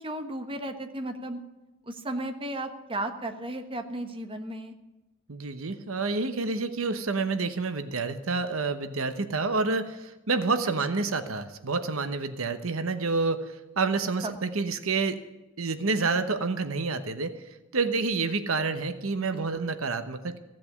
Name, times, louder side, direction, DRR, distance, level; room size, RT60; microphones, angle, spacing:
voice 1, 0.0-1.4 1.9-4.7 14.2-14.4 19.3-19.7, right 1 dB, 25° right, 7 dB, 1.3 m, -34 dB
voice 2, 5.3-15.2 15.6-17.4 17.7-20.4, right 3 dB, 75° right, 10 dB, 1.0 m, -28 dB
16.0 x 7.7 x 9.9 m, 1.1 s
head